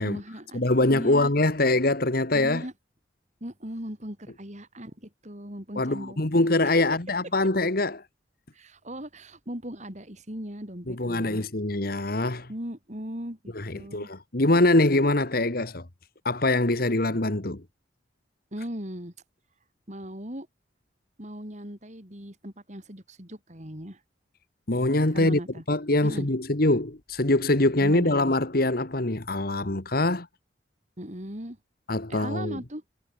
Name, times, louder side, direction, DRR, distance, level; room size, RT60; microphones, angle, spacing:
voice 1, 0.0-1.3 2.3-2.7 3.4-6.8 8.5-11.5 12.5-14.1 18.5-19.1 19.9-20.5 21.2-24.0 25.1-25.6 26.0-26.3 27.8-28.4 31.0-31.6 32.1-32.8, equal, 40° right, 6.8 m, -38 dB
voice 2, 0.5-2.6 5.8-8.0 10.9-12.5 13.6-15.9 16.3-17.6 24.7-25.4 25.7-30.3 31.9-32.6, left 2 dB, 55° left, 1.8 m, -24 dB
head